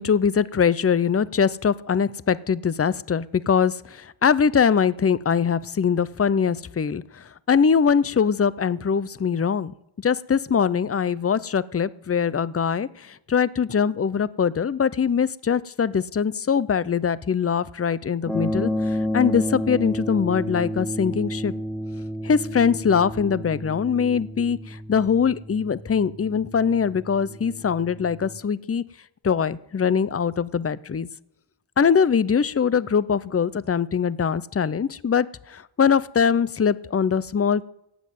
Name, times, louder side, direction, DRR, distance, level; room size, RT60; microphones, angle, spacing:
voice 1, 0.0-21.5 22.2-28.8 29.2-31.1 31.8-37.7, left 6 dB, 30° left, 19 dB, 0.5 m, -22 dB
sound 1, 18.3-28.4, equal, 5° left, 1.8 m, -31 dB
15.5 x 7.4 x 9.3 m, 0.89 s
wide cardioid pair, 70°, 49 cm